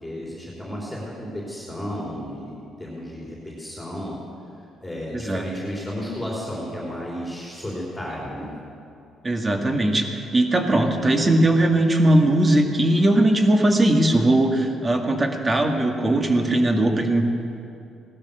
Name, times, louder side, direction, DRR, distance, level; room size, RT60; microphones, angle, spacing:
voice 1, 0.0-4.2 4.8-8.5, equal, 5° left, -5 dB, 3.5 m, -33 dB
voice 2, 9.2-17.3, right 1 dB, 20° right, 3 dB, 1.7 m, -19 dB
17.5 x 12.0 x 6.8 m, 2.6 s
cardioid pair, 120°, 0 cm